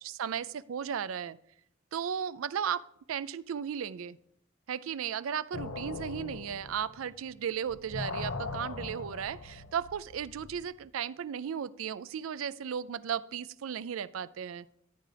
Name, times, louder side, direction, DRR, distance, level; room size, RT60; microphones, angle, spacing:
voice 1, 0.0-1.4 1.9-4.2 4.7-14.7, right 8 dB, 80° right, 18 dB, 0.4 m, -35 dB
sound 1, 5.5-7.4 7.7-10.7, left 3 dB, 75° left, 0.9 m, -40 dB
13.5 x 9.3 x 3.4 m, 0.73 s
head